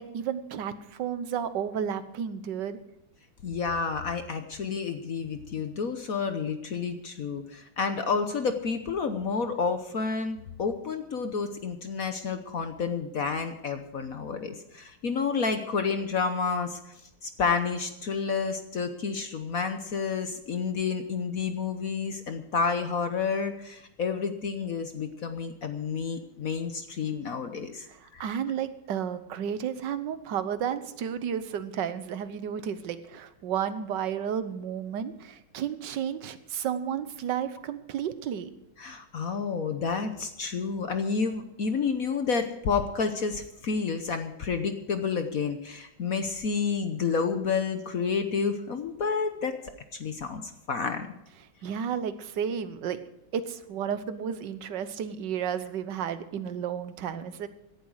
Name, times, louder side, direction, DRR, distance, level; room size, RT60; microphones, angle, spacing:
voice 1, 0.0-2.8 27.9-38.5 51.6-53.0 53.3-57.5, right 8 dB, 60° right, 12 dB, 1.5 m, -32 dB
voice 2, 3.4-16.8 17.2-27.9 28.1-28.4 38.8-49.6 49.9-51.1, left 5 dB, 55° left, 8 dB, 1.1 m, -30 dB
17.5 x 11.5 x 4.8 m, 0.85 s
omnidirectional pair, 2.3 m